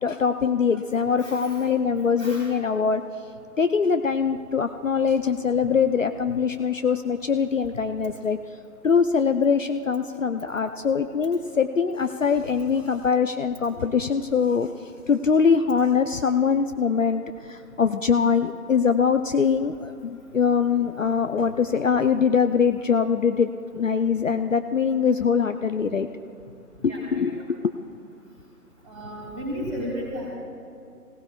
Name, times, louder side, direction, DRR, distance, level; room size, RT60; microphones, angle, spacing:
voice 1, 0.0-3.0 3.6-8.4 8.8-14.7 15.1-26.1 26.8-27.3 27.6-27.7, left 6 dB, 55° left, 8 dB, 0.6 m, -23 dB
voice 2, 1.2-1.6 2.2-2.5 26.9-27.2 28.8-30.3, equal, 10° right, -6 dB, 3.6 m, -34 dB
27.5 x 18.0 x 2.3 m, 2.5 s
figure-of-eight pair, 155°, 47 cm